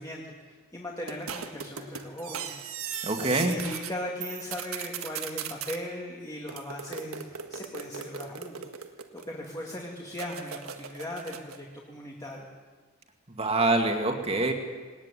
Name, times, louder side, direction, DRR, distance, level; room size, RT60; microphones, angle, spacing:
voice 1, 0.0-2.5 3.0-8.7 9.1-12.5, left 1 dB, 15° left, -2 dB, 2.3 m, -38 dB
sound 1, 1.1-3.9 4.2-5.8 6.5-9.5 10.1-11.6, right 8 dB, 65° right, 1.7 m, -38 dB
voice 2, 3.0-3.6 13.3-14.5, right 2 dB, 25° right, 4 dB, 2.2 m, -25 dB
19.0 x 19.0 x 9.9 m, 1.5 s
head